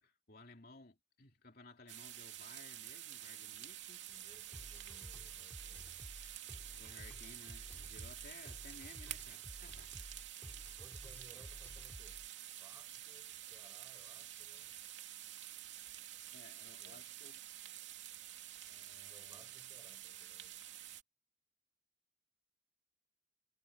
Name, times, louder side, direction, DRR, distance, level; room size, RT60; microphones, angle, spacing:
voice 1, 0.0-4.1 6.8-10.0 16.3-17.4 18.7-19.5, left 3 dB, 50° left, 2.9 m, -58 dB
sound 1, 1.9-21.0, right 12 dB, 65° right, 3.0 m, -49 dB
voice 2, 4.1-6.0 9.6-10.2 10.8-14.8 16.8-17.2 19.0-20.6, right 1 dB, 20° right, 6.7 m, -65 dB
sound 2, 4.5-12.3, equal, 10° left, 5.3 m, -53 dB
head